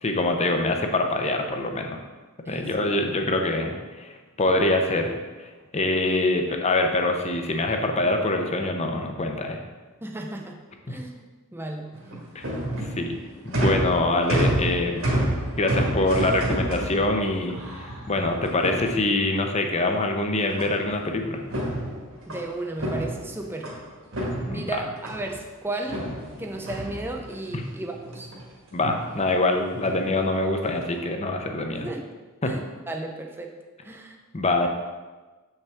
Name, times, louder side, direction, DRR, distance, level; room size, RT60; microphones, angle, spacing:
voice 1, 0.0-2.0 2.5-5.5 5.7-9.6 10.9-11.0 12.3-12.4 13.0-13.2 13.4-15.0 15.6-17.6 18.1-21.4 24.5-24.8 27.5-27.6 28.7-31.9 32.4-32.6 34.3-34.7, left 2 dB, 30° left, 4 dB, 0.7 m, -24 dB
voice 2, 10.0-10.6 10.9-11.2 11.5-12.1 22.3-23.7 24.3-26.0 26.4-28.3 31.7-32.1 32.4-33.5 33.8-34.2, right 2 dB, 10° right, 2 dB, 0.6 m, -34 dB
sound 1, 11.9-19.5 20.6-21.1 21.4-23.8 24.1-25.4 25.9-27.5 27.9-28.4 28.7-29.1 29.8-30.2 30.7-31.0, right 1 dB, 65° right, 1.8 m, -29 dB
7.4 x 5.5 x 3.5 m, 1.3 s
head